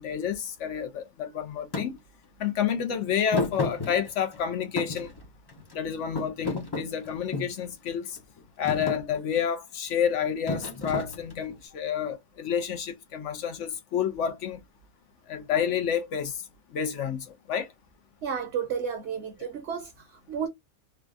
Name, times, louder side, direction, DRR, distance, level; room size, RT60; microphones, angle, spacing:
voice 1, 0.0-2.0 2.4-5.1 5.7-8.2 8.6-14.6 15.3-17.7, left 8 dB, 65° left, 0.9 m, -29 dB
Thump thud, 1.7-1.9 3.3-4.4 4.8-5.8 6.2-7.6 8.2-8.4 8.7-9.0 10.5-11.5, left 3 dB, 25° left, 0.6 m, -31 dB
voice 2, 18.2-20.5, right 7 dB, 55° right, 1.0 m, -32 dB
3.3 x 2.2 x 2.4 m
omnidirectional pair, 1.5 m